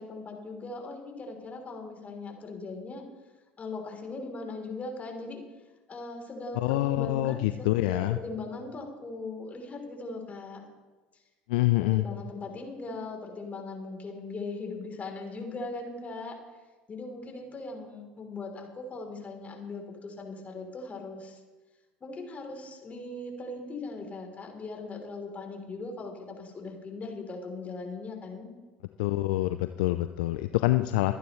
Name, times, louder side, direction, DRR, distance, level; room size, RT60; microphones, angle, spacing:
voice 1, 0.0-3.0 3.6-5.4 5.9-10.7 11.8-16.4 16.9-21.4 22.0-28.5, left 3 dB, 30° left, 2 dB, 3.4 m, -39 dB
voice 2, 6.6-8.2 11.5-12.0 29.0-31.1, left 17 dB, 65° left, 10 dB, 0.4 m, -26 dB
24.0 x 9.3 x 3.2 m, 1.2 s
figure-of-eight pair, 70°, 5 cm